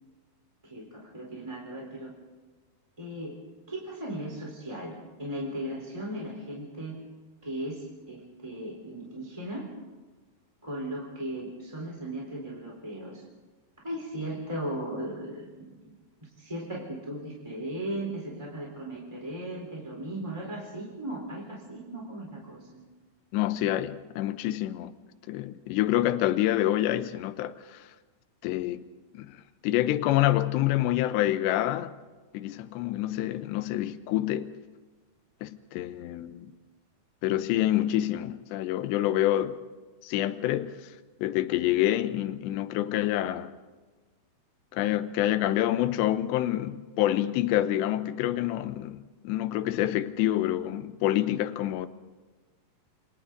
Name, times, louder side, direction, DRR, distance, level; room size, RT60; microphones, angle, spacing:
voice 1, 0.7-2.1 3.0-3.3 3.7-6.9 7.4-9.6 10.6-13.2 13.8-15.9 16.4-22.8, right 1 dB, 5° right, 3.5 m, -37 dB
voice 2, 23.3-24.9 25.3-27.9 28.4-28.9 29.1-29.4 29.6-31.9 32.3-34.5 35.4-36.5 37.2-39.6 40.0-40.9 41.2-43.5 44.7-51.9, left 13 dB, 80° left, 3.0 m, -27 dB
30.0 x 25.0 x 3.9 m
omnidirectional pair, 5.1 m